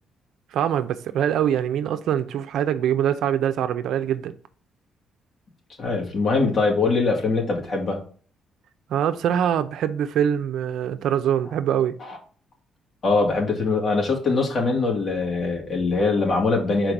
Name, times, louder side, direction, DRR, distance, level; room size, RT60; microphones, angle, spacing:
voice 1, 0.5-4.3 8.9-11.9, right 9 dB, 80° right, 0.6 m, -23 dB
voice 2, 5.8-8.0 12.0-12.2 13.0-16.9, left 3 dB, 50° left, 2.5 m, -22 dB
5.1 x 4.6 x 6.0 m
cardioid pair, 90°, 0 cm